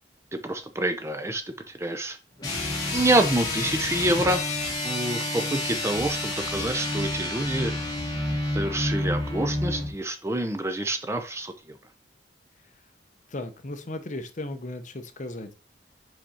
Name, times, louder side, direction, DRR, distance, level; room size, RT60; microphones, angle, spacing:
voice 1, 0.3-1.4 1.7-2.2 2.9-4.4 4.8-7.7 8.5-11.5, right 1 dB, 15° right, 7 dB, 0.6 m, -27 dB
sound 1, 2.4-9.9, left 1 dB, 25° left, 2.0 m, -29 dB
voice 2, 13.3-15.5, left 1 dB, 45° left, 8 dB, 0.8 m, -36 dB
5.2 x 5.1 x 4.3 m, 0.31 s
head